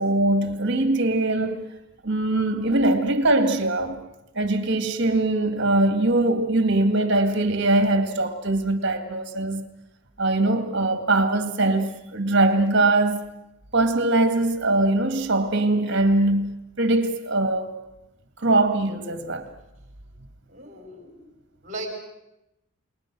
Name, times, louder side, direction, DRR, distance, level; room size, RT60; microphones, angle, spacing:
voice 1, 0.0-1.7 2.0-4.0 4.3-9.6 10.2-13.2 13.7-17.8 18.4-19.5, right 2 dB, 50° right, 2.0 m, -22 dB
voice 2, 20.5-21.3 21.6-22.0, right 2 dB, 35° right, 5.4 m, -37 dB
29.5 x 21.0 x 6.1 m
head